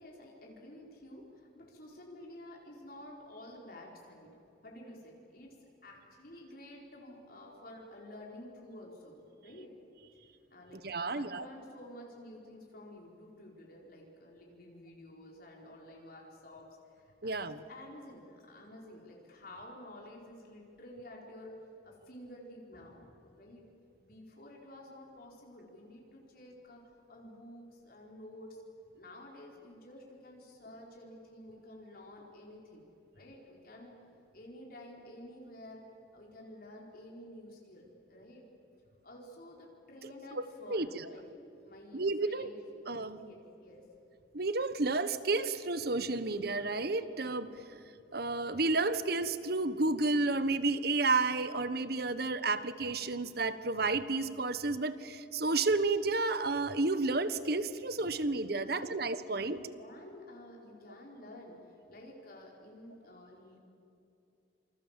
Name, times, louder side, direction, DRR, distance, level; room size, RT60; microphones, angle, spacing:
voice 1, 0.0-4.3 4.6-9.8 10.5-21.5 21.8-23.6 24.0-26.8 27.1-28.6 28.9-32.8 33.1-34.0 34.3-35.8 36.1-38.4 39.0-41.2 41.6-42.5 43.2-43.9 58.6-58.9 59.3-63.6, left 1 dB, 55° left, -2 dB, 4.8 m, -51 dB
voice 2, 10.8-11.4 17.2-17.6 40.3-41.0 41.9-42.5 42.9-43.2 44.3-47.8 48.1-59.6, right 3 dB, 55° right, 13 dB, 1.3 m, -31 dB
27.5 x 27.5 x 7.6 m, 2.7 s
head